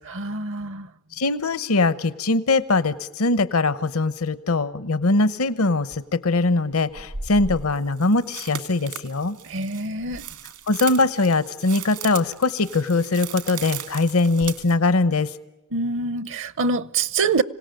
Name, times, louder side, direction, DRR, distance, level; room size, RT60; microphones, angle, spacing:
voice 1, 0.1-0.9 9.5-10.2 15.7-17.4, right 4 dB, 60° right, 0.7 m, -25 dB
voice 2, 1.2-9.4 10.7-15.3, left 3 dB, 70° left, 0.9 m, -21 dB
sound 1, 5.9-6.0 6.9-14.7, right 7 dB, 80° right, 2.2 m, -36 dB
26.0 x 18.0 x 9.1 m
head